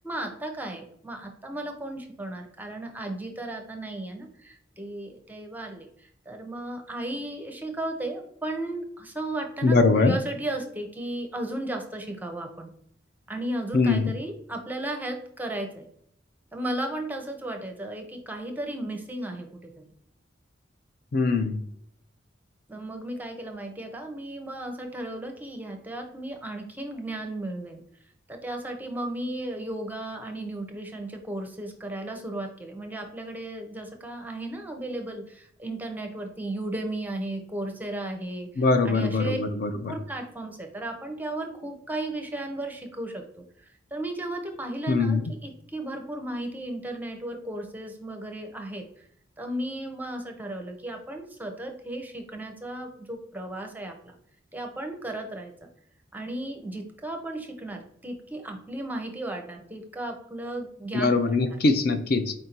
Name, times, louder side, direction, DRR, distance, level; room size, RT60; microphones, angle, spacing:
voice 1, 0.0-12.7 13.3-15.8 16.5-19.9 22.7-27.8 28.3-39.4 39.7-48.8 49.4-54.2 54.5-55.7 56.1-61.2, right 1 dB, 10° right, 3 dB, 0.6 m, -35 dB
voice 2, 9.6-10.2 13.7-14.1 21.1-21.6 38.6-39.9 44.9-45.2 60.9-62.3, left 3 dB, 50° left, 8 dB, 0.4 m, -22 dB
4.5 x 2.6 x 4.3 m, 0.68 s
head